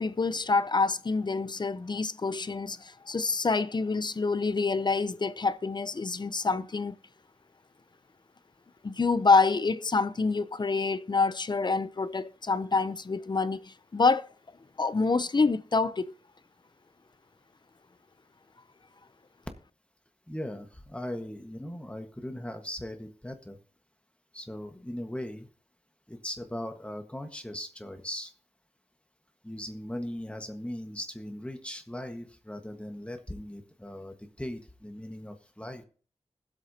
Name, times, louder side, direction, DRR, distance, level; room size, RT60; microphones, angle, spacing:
voice 1, 0.0-7.0 8.8-14.3 14.8-16.1, left 4 dB, 40° left, 0.6 m, -27 dB
voice 2, 20.3-23.6 24.3-25.5 26.1-28.3 29.4-35.8, left 1 dB, 10° left, 1.5 m, -39 dB
20.5 x 8.1 x 2.9 m
wide cardioid pair, 85°, 11 cm